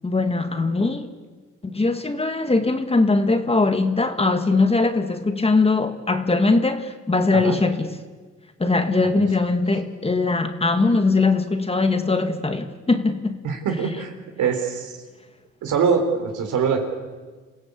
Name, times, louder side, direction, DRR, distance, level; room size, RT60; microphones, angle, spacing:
voice 1, 0.0-1.1 1.6-8.0 8.6-13.4, left 3 dB, 20° left, 7 dB, 1.8 m, -21 dB
voice 2, 13.4-14.1 14.4-14.9 15.6-16.8, right 6 dB, 75° right, 4 dB, 4.2 m, -23 dB
27.5 x 16.0 x 8.4 m, 1.4 s
cardioid pair, 90°, 30 cm